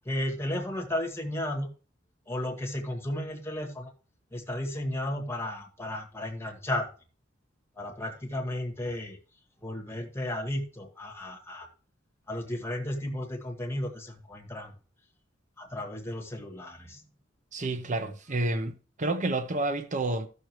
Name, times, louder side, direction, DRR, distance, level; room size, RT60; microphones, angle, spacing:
voice 1, 0.1-1.7 2.3-3.9 4.3-6.9 7.8-9.2 9.6-11.7 12.3-14.7 15.6-17.0, left 1 dB, 15° left, 1.8 m, -34 dB
voice 2, 17.5-20.3, right 2 dB, 40° right, 0.8 m, -29 dB
14.0 x 6.5 x 3.1 m
head